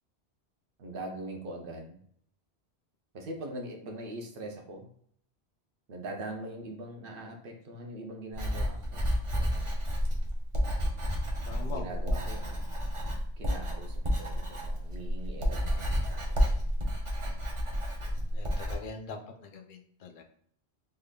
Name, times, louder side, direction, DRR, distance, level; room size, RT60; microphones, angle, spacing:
voice 1, 0.8-2.0 3.1-4.9 5.9-9.1 9.3-9.8 11.7-12.7 13.4-16.5 18.0-18.3, right 1 dB, 60° right, 2 dB, 0.9 m, -42 dB
Writing, 8.3-18.8, equal, 35° right, 0.6 m, -30 dB
voice 2, 11.5-12.2 18.3-20.2, left 4 dB, 60° left, 3 dB, 0.6 m, -43 dB
3.6 x 3.3 x 2.2 m, 0.63 s
omnidirectional pair, 1.1 m